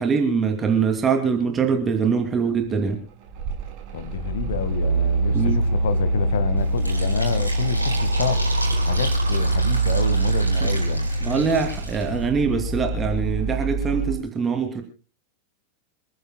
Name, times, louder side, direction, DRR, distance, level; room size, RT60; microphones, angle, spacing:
voice 1, 0.0-3.0 5.3-5.6 11.2-14.8, right 6 dB, 20° right, 2.6 m, -23 dB
Mechanical fan, 2.9-14.2, right 2 dB, 40° right, 6.1 m, -24 dB
voice 2, 3.9-8.4 8.8-11.1, left 7 dB, 60° left, 1.7 m, -28 dB
Fill (with liquid), 6.6-12.3, right 2 dB, 85° right, 4.6 m, -33 dB
27.5 x 14.5 x 2.2 m
figure-of-eight pair, 90°, 0 cm